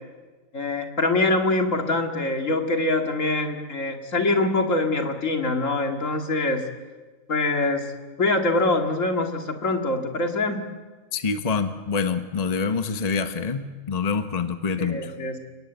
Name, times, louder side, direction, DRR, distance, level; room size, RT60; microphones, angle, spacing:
voice 1, 0.5-6.6 7.3-7.8 8.2-10.6 14.8-15.4, left 2 dB, 65° left, 4 dB, 2.5 m, -24 dB
voice 2, 11.1-15.1, left 5 dB, 30° left, 8 dB, 1.1 m, -26 dB
30.0 x 18.0 x 8.1 m, 1.3 s
omnidirectional pair, 1.5 m